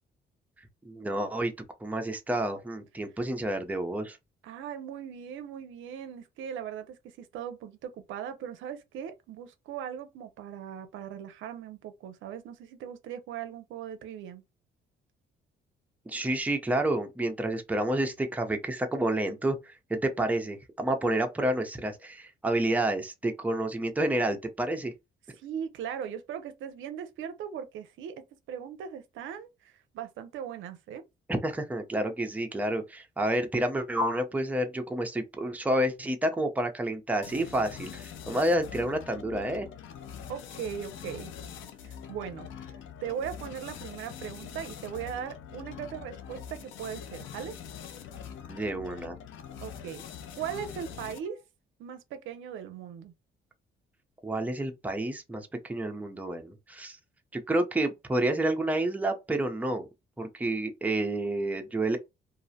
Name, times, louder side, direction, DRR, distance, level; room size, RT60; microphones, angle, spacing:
voice 1, 0.9-1.5 1.8-4.2 16.1-24.9 31.4-39.7 48.5-49.2 54.2-57.0 57.3-59.9 60.2-62.0, right 1 dB, 10° right, 0.5 m, -29 dB
voice 2, 4.4-14.4 25.4-31.0 40.3-41.4 41.8-42.7 43.0-47.6 49.6-50.0 50.4-51.4 51.8-53.1, right 8 dB, 80° right, 0.5 m, -39 dB
sound 1, 37.2-51.4, left 8 dB, 75° left, 0.5 m, -44 dB
2.4 x 2.0 x 2.7 m
cardioid pair, 90°, 20 cm